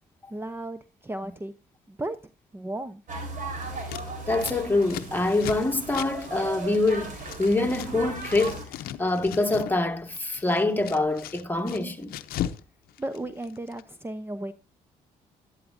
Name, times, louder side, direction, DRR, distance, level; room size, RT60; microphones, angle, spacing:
voice 1, 0.3-1.5 1.9-2.2 2.5-3.0 13.0-14.5, right 1 dB, 15° right, 0.8 m, -34 dB
sound 1, 3.1-8.6, right 3 dB, 60° right, 4.0 m, -37 dB
Scissors, 3.8-7.9 8.1-9.8 10.1-12.6 12.9-13.8, left 11 dB, 80° left, 0.7 m, -37 dB
voice 2, 4.3-8.6 9.0-12.1, left 2 dB, 15° left, 1.7 m, -25 dB
11.5 x 11.5 x 2.6 m
supercardioid pair, 65°, 15 cm